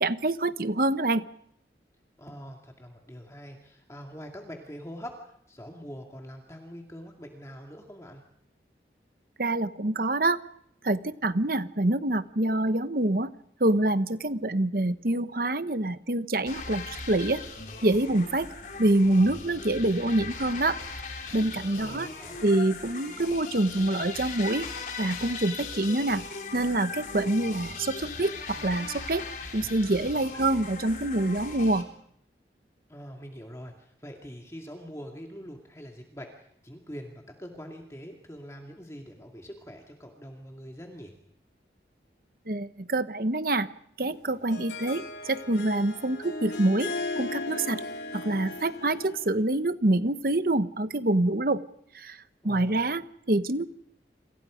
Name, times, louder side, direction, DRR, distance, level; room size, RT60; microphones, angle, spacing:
voice 1, 0.0-1.2 9.4-10.4 10.8-13.3 13.6-17.4 17.8-18.5 18.8-20.8 21.3-22.1 22.4-24.7 25.0-26.2 26.5-29.2 29.5-31.9 42.5-43.7 44.0-46.9 47.2-47.8 48.1-51.6 51.9-53.7, right 2 dB, 55° right, 12 dB, 1.1 m, -26 dB
voice 2, 2.2-8.2 21.8-22.6 32.9-41.1 52.4-52.9, equal, 15° left, 2 dB, 2.3 m, -44 dB
sound 1, 16.5-31.8, left 4 dB, 45° left, 4.1 m, -39 dB
Harp, 44.1-49.4, left 2 dB, 75° left, 3.6 m, -36 dB
29.0 x 26.5 x 5.1 m, 0.73 s
head